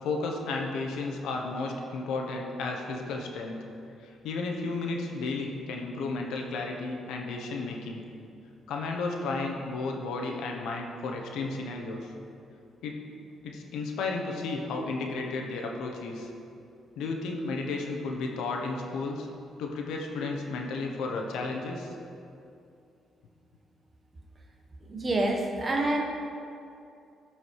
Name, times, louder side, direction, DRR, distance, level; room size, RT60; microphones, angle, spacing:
voice 1, 0.0-3.6 4.0-8.0 8.7-12.0 12.8-13.0 13.4-16.3 17.0-19.3 19.6-21.9, left 3 dB, 85° left, 1 dB, 1.2 m, -33 dB
voice 2, 24.9-26.0, right 2 dB, 30° right, 1 dB, 1.4 m, -27 dB
13.0 x 5.0 x 4.8 m, 2.6 s
cardioid pair, 90°, 0 cm